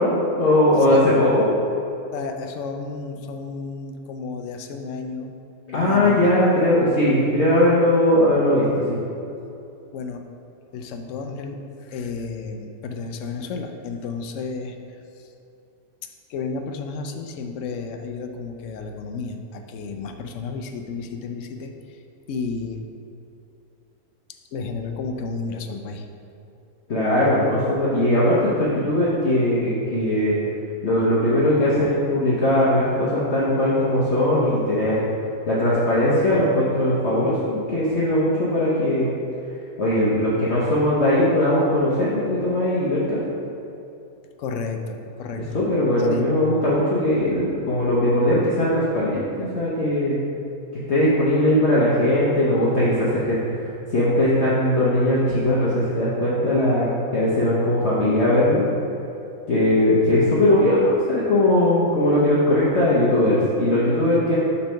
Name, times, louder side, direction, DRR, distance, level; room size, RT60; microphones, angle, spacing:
voice 1, 0.0-1.5 5.7-9.0 26.9-30.3 30.8-35.0 35.5-39.1 39.8-43.2 45.5-50.2 50.9-58.6 59.5-64.4, left 1 dB, 50° left, -8 dB, 1.1 m, -19 dB
voice 2, 2.1-5.3 5.7-6.2 9.9-10.3 10.7-15.3 16.0-22.0 22.3-22.8 24.3-26.1 44.4-45.6 46.1-46.3, left 4 dB, 70° left, 5 dB, 0.8 m, -32 dB
6.8 x 3.4 x 5.5 m, 2.7 s
omnidirectional pair, 1.6 m